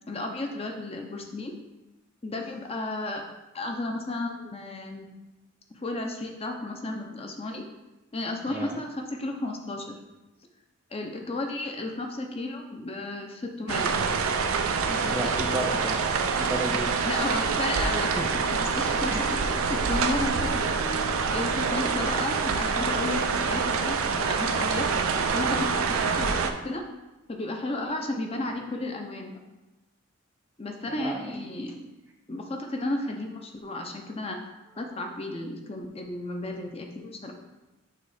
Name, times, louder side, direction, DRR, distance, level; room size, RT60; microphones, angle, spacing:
voice 1, 0.1-1.6 2.2-3.2 3.5-5.1 5.7-7.6 8.1-10.0 10.9-14.0 14.9-15.5 16.1-16.2 17.0-20.8 21.3-24.9 25.3-26.8 27.3-29.4 30.6-31.9 32.3-34.4 34.8-37.3, left 2 dB, 30° left, 3 dB, 0.6 m, -33 dB
sound 1, 13.7-26.5, right 5 dB, 90° right, 0.5 m, -26 dB
voice 2, 15.0-16.1 16.4-17.0 18.2-18.3 19.1-19.3 31.0-31.4, equal, 10° right, 1 dB, 0.3 m, -33 dB
sound 2, 17.6-23.8, left 2 dB, 85° left, 0.5 m, -42 dB
6.8 x 3.1 x 4.8 m, 1.0 s
head